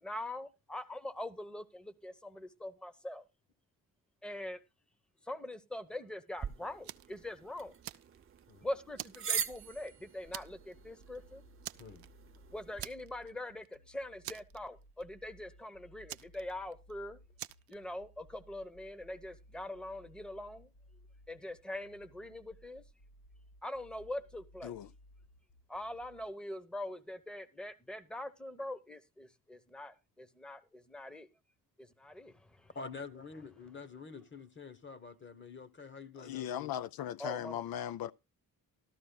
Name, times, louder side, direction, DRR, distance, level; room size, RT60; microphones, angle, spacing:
voice 1, 0.0-3.3 4.2-4.6 5.2-7.7 8.6-11.4 12.5-17.2 17.7-20.7 21.3-22.8 23.6-24.8 25.7-31.3 31.8-32.7 37.2-37.6, left 1 dB, 5° left, 0.9 m, -43 dB
sound 1, 6.4-12.9, right 7 dB, 35° right, 0.8 m, -43 dB
Fire, 6.8-7.2 7.6-8.5 9.0-9.9 10.3-10.7 11.0-11.2 11.6-12.4 12.8-13.4 13.6-13.8 14.2-15.0 16.1-16.9 17.4-17.7, right 14 dB, 85° right, 0.6 m, -46 dB
sound 2, 10.2-26.2, equal, 65° left, 1.4 m, -60 dB
voice 2, 32.7-36.7, left 4 dB, 30° left, 1.2 m, -47 dB
voice 3, 36.2-38.1, left 10 dB, 80° left, 0.5 m, -38 dB
14.0 x 13.0 x 2.3 m
cardioid pair, 115°, 35 cm